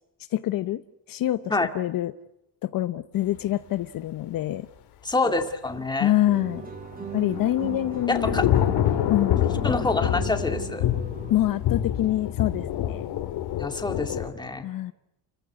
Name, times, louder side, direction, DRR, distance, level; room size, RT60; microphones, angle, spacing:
voice 1, 0.3-0.8 1.1-2.1 2.6-4.7 6.0-6.7 7.1-8.4 8.8-9.4 11.3-13.1 14.6-14.9, left 13 dB, 55° left, 12 dB, 0.8 m, -26 dB
voice 2, 5.0-6.1 8.1-8.5 9.6-10.9 13.6-14.7, left 3 dB, 10° left, 5 dB, 2.2 m, -26 dB
sound 1, 6.3-11.6, right 5 dB, 20° right, 2.5 m, -37 dB
Thunder / Rain, 6.9-14.3, left 11 dB, 75° left, 2.5 m, -26 dB
30.0 x 15.0 x 9.5 m, 0.89 s
cardioid pair, 150°, 40 cm